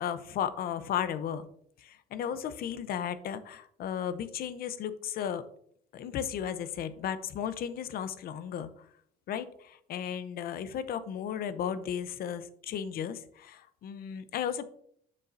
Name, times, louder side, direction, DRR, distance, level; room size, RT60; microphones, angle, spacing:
voice 1, 0.0-1.5 1.8-5.4 5.9-8.9 9.3-14.6, left 9 dB, 60° left, 13 dB, 0.7 m, -35 dB
7.3 x 6.6 x 2.6 m, 0.65 s
cardioid pair, 110°, 17 cm